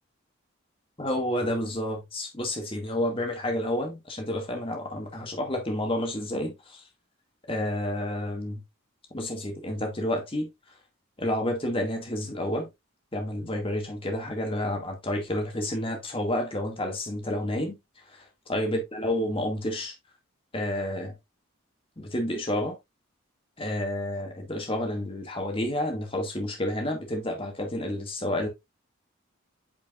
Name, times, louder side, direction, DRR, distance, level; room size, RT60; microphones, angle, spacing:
voice 1, 1.0-6.8 7.5-8.6 9.1-10.5 11.2-12.7 13.1-17.8 18.5-19.9 20.5-21.1 22.0-22.8 23.6-28.5, left 1 dB, 25° left, 2.1 m, -30 dB
9.1 x 5.3 x 2.5 m
head